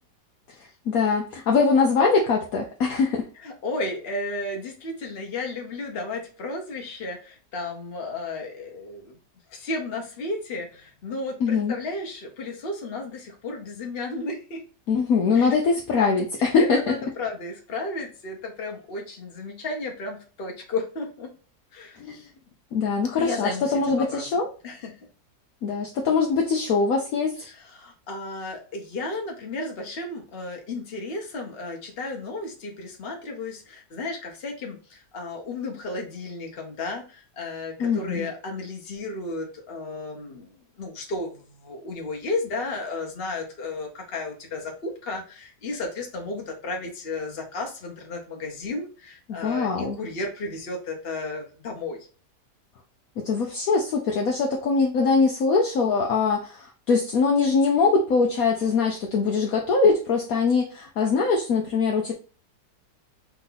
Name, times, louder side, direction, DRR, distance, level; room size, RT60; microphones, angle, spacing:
voice 1, 0.9-3.2 11.4-11.8 14.9-16.8 22.0-22.2 22.7-24.5 25.6-27.3 37.8-38.3 49.3-50.0 53.2-62.1, left 4 dB, 65° left, 0 dB, 1.1 m, -22 dB
voice 2, 3.4-9.2 9.5-14.6 15.3-15.6 16.4-21.3 21.7-22.3 23.2-24.4 24.6-25.0 27.4-52.0, left 2 dB, 40° left, 1 dB, 1.2 m, -33 dB
4.6 x 2.7 x 3.9 m, 0.37 s
omnidirectional pair, 1.8 m